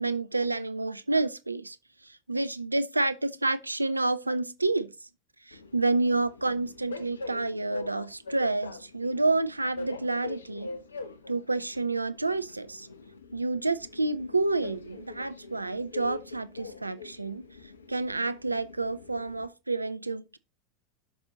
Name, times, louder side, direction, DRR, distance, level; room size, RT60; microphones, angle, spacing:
voice 1, 0.0-1.8 2.0-4.9 5.5-10.7 11.3-12.9 13.3-17.4 17.9-20.4, right 2 dB, 90° right, 0.6 m, -29 dB
Train, 5.5-19.5, left 3 dB, 80° left, 1.0 m, -44 dB
12.0 x 6.1 x 3.9 m
figure-of-eight pair, 80°, 0 cm